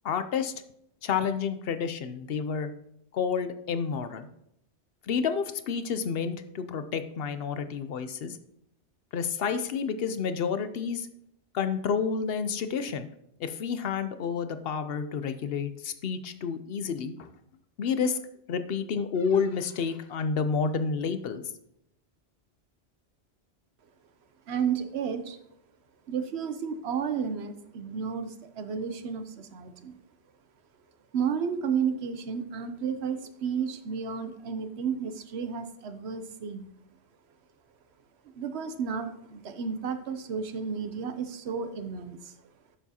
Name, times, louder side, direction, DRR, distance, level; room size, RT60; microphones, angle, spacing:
voice 1, 0.0-0.5 1.0-2.7 3.1-4.3 5.0-8.4 9.1-11.1 11.5-13.1 13.4-17.3 17.8-18.2 18.5-21.4, left 6 dB, 65° left, 10 dB, 0.8 m, -30 dB
voice 2, 24.5-25.4 26.1-30.0 31.1-36.7 38.3-42.3, right 6 dB, 70° right, 9 dB, 1.0 m, -32 dB
10.0 x 6.9 x 2.8 m, 0.77 s
omnidirectional pair, 1.2 m